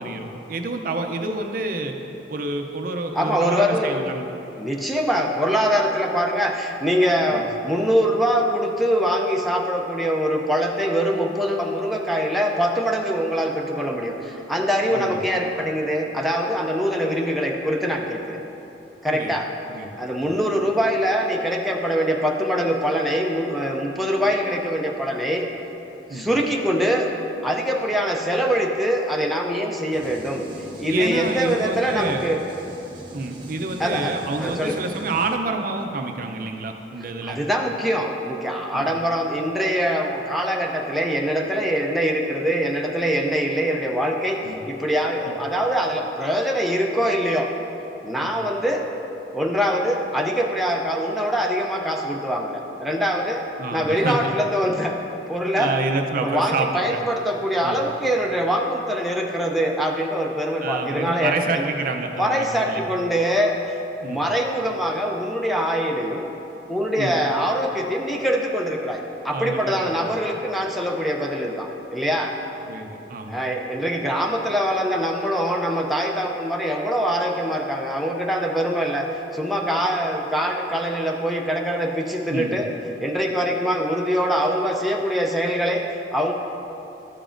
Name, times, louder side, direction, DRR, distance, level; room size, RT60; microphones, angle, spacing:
voice 1, 0.0-1.9 2.3-4.3 7.3-7.4 14.9-15.2 19.1-19.3 19.7-20.4 26.1-26.3 30.9-32.3 33.1-37.4 38.7-38.9 44.4-44.6 45.3-45.4 48.2-48.3 53.6-54.3 55.6-57.0 57.6-57.8 60.6-62.8 64.0-64.2 67.0-67.2 69.3-70.1 72.7-73.4 82.3-82.6, right 3 dB, 50° right, 4 dB, 0.5 m, -28 dB
voice 2, 3.1-4.0 4.6-18.4 19.0-19.5 20.0-25.5 26.1-27.1 27.4-30.5 30.8-32.4 33.8-34.8 37.2-47.6 48.0-48.9 49.3-55.0 55.3-55.8 56.2-61.7 62.2-66.3 66.7-72.4 73.3-82.7 83.0-86.3, equal, ahead, -1 dB, 0.5 m, -23 dB
sound 1, 29.9-35.4, right 1 dB, 30° right, 0.9 m, -40 dB
12.5 x 7.0 x 2.5 m, 3.0 s
head